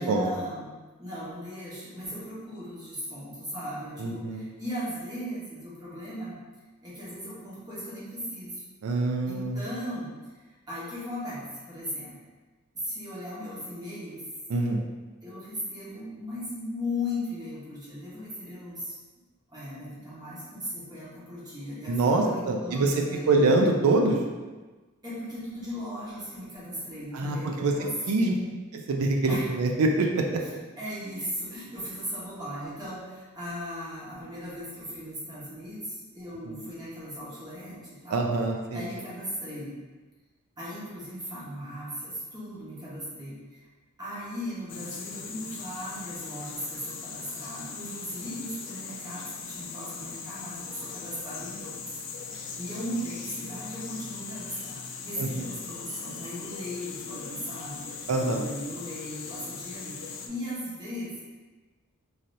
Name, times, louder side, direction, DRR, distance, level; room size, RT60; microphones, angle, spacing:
voice 1, 0.0-6.4 6.8-8.6 9.3-10.1 10.7-12.2 12.7-14.2 15.2-18.9 19.5-23.5 25.0-28.5 29.3-29.5 30.4-30.5 30.8-38.3 38.7-39.7 40.6-43.6 44.0-51.8 52.2-60.0 60.3-61.2, equal, 20° right, -9 dB, 1.0 m, -37 dB
voice 2, 4.0-4.4 8.8-9.6 14.5-14.8 21.9-24.2 27.1-27.7 28.1-28.3 28.9-30.4 36.5-36.6 38.1-38.8 55.2-55.5 58.1-58.5, right 2 dB, 80° right, 2 dB, 0.4 m, -25 dB
sound 1, 44.7-60.3, left 5 dB, 60° left, 0.3 m, -40 dB
3.2 x 2.6 x 2.6 m, 1.3 s
head